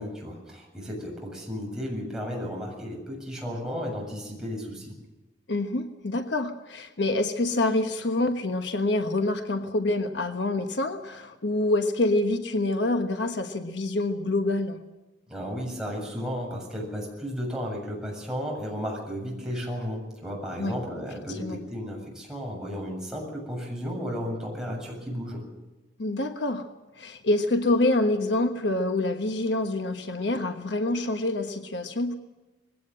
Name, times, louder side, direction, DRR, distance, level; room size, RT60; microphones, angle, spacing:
voice 1, 0.0-4.9 15.3-25.4, equal, 5° right, -2 dB, 7.5 m, -34 dB
voice 2, 5.5-14.8 20.6-20.8 21.3-21.6 26.0-26.6 27.0-32.1, left 2 dB, 70° left, 6 dB, 1.3 m, -26 dB
21.0 x 17.0 x 7.7 m, 1.1 s
head